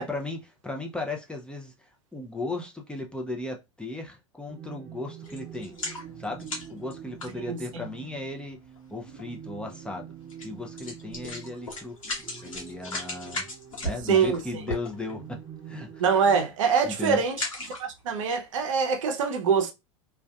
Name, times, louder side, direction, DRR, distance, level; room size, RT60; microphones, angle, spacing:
voice 1, 0.0-1.7 2.1-5.7 6.2-8.6 8.9-10.1 10.4-12.0 12.4-13.5 13.8-15.4 15.7-16.0 16.8-17.2, left 2 dB, 5° left, 0.5 m, -36 dB
sound 1, 4.5-16.5, right 8 dB, 30° right, 0.8 m, -46 dB
sound 2, 5.2-8.0 8.8-8.9 9.2-9.3 10.3-10.5 10.8-15.3 15.8-16.0 16.3-16.7 17.2-18.1 18.6-18.7, left 1 dB, 90° left, 1.0 m, -36 dB
voice 2, 7.4-7.8 14.1-14.4 16.0-17.4 17.8-19.7, right 6 dB, 70° right, 0.6 m, -24 dB
2.4 x 2.2 x 2.2 m
hypercardioid pair, 90°, 17 cm